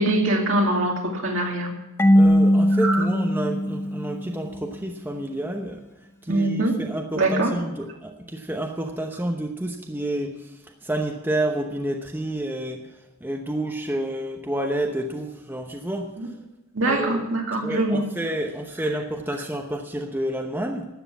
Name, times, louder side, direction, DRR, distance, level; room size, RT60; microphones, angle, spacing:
voice 1, 0.0-1.7 2.8-3.0 6.3-6.8 7.1-7.5 16.2-16.3 16.7-18.0, right 1 dB, 65° right, 0 dB, 2.4 m, -23 dB
Marimba xylophone / Wood, 2.0-4.7, equal, 10° left, 0.4 m, -20 dB
voice 2, 2.1-5.8 6.2-16.2 16.8-17.2 17.6-20.9, right 1 dB, 10° right, 2 dB, 0.9 m, -29 dB
12.5 x 8.1 x 8.2 m, 1.0 s
head